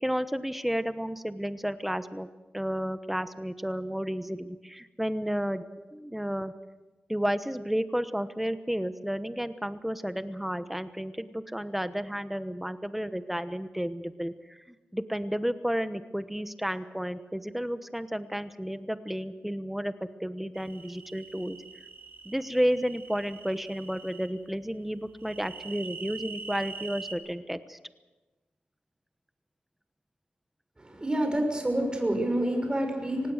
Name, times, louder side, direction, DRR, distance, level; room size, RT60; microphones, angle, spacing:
voice 1, 0.0-2.3 2.5-5.7 5.9-6.5 7.1-14.6 14.9-19.9 20.2-21.6 22.2-27.8, equal, 5° right, 11 dB, 1.1 m, -32 dB
sound 1, 20.5-24.3 25.2-27.1, right 4 dB, 75° right, 3.2 m, -44 dB
voice 2, 30.8-33.3, right 1 dB, 25° right, 3 dB, 6.0 m, -28 dB
25.0 x 19.0 x 6.5 m, 1.2 s
wide cardioid pair, 85°, 4 cm